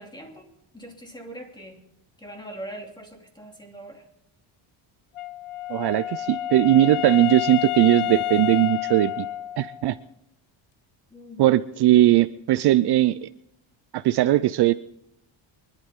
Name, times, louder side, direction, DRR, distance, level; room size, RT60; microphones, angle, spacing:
voice 1, 0.0-1.8 2.2-4.0 11.1-11.4, right 1 dB, 10° left, 2 dB, 2.8 m, -41 dB
Wind instrument woodwind instrument, 5.2-9.9, left 15 dB, 80° left, 0.9 m, -29 dB
voice 2, 5.7-9.3 9.6-10.0 11.4-13.3 13.9-14.7, right 14 dB, 55° right, 14 dB, 0.5 m, -19 dB
24.0 x 11.5 x 3.7 m, 0.82 s
cardioid pair, 145°, 49 cm